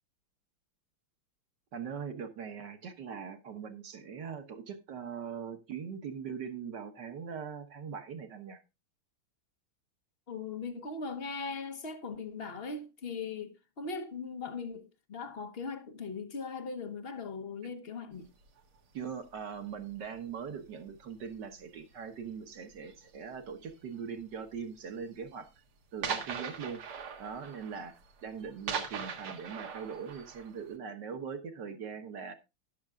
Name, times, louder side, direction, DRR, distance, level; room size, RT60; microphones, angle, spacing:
voice 1, 1.7-8.6 18.9-25.5 25.9-26.8 27.2-28.0 28.2-32.3, right 6 dB, 55° right, 1.7 m, -41 dB
voice 2, 10.3-18.3, left 4 dB, 45° left, 0.8 m, -39 dB
sound 1, 18.4-18.6 19.4-19.8 20.0-20.5 20.9-21.1 21.6-21.7 21.9-22.0 22.8-23.3 24.1-24.2 24.6-24.7 25.0-25.1 25.4-25.5 26.0-30.7, right 6 dB, 80° right, 2.5 m, -40 dB
13.5 x 11.0 x 2.4 m
omnidirectional pair, 2.3 m